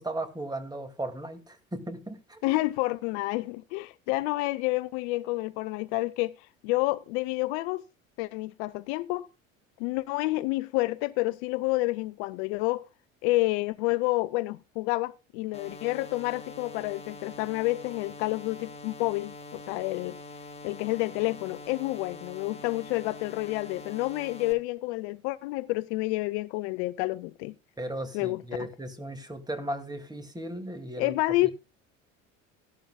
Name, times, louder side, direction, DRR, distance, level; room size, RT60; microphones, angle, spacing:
voice 1, 0.0-2.6 27.8-31.1 31.4-31.5, right 1 dB, 10° right, 2.1 m, -36 dB
voice 2, 2.4-7.8 8.2-9.3 9.8-12.9 13.2-20.2 20.6-27.5 28.1-28.4 31.0-31.5, left 20 dB, 55° left, 0.6 m, -29 dB
sound 1, 15.5-24.5, left 3 dB, 15° left, 2.3 m, -44 dB
15.5 x 11.5 x 2.2 m
figure-of-eight pair, 65°, 40 cm